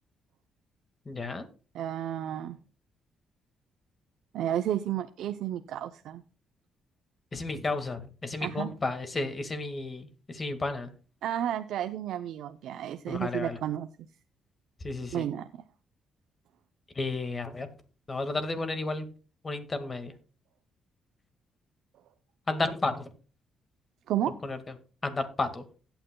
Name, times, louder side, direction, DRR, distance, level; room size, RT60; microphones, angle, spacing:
voice 1, 1.1-1.5 7.3-10.9 13.1-13.6 14.8-15.3 17.0-17.7 18.1-19.1 19.4-20.1 22.5-23.1 24.4-24.6 25.0-25.6, left 3 dB, 30° left, 9 dB, 1.8 m, -32 dB
voice 2, 1.7-2.6 4.3-6.2 8.4-8.7 11.2-13.9 15.1-15.6 24.1-24.3, right 11 dB, 80° right, 9 dB, 0.6 m, -32 dB
16.0 x 9.0 x 2.3 m, 0.36 s
cardioid pair, 90°, 0 cm